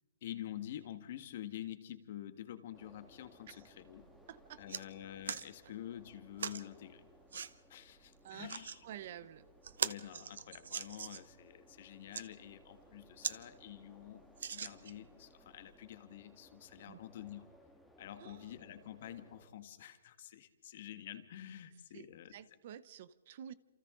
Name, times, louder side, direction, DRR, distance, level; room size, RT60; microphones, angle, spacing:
voice 1, 0.2-4.1 4.6-7.0 7.3-8.8 9.8-14.2 14.5-17.5 18.0-22.3, left 11 dB, 45° left, 9 dB, 1.7 m, -48 dB
sound 1, 2.7-19.5, left 1 dB, ahead, 1.9 m, -63 dB
sound 2, 4.0-4.1 4.4-4.8 5.2-5.5 6.4-6.6 7.3-7.5 8.3-8.8 9.2-9.3 9.6-11.3 11.9-12.2 12.8-12.9 13.2-13.4 13.7-13.8 14.4-15.1 15.7-15.8, right 7 dB, 75° right, 1.0 m, -40 dB
voice 2, 4.3-4.8 8.2-8.6 8.8-9.5 16.8-17.0 18.2-18.5 21.9-23.5, right 10 dB, 40° right, 17 dB, 0.7 m, -50 dB
28.5 x 28.0 x 3.9 m, 1.3 s
hypercardioid pair, 170°, 0 cm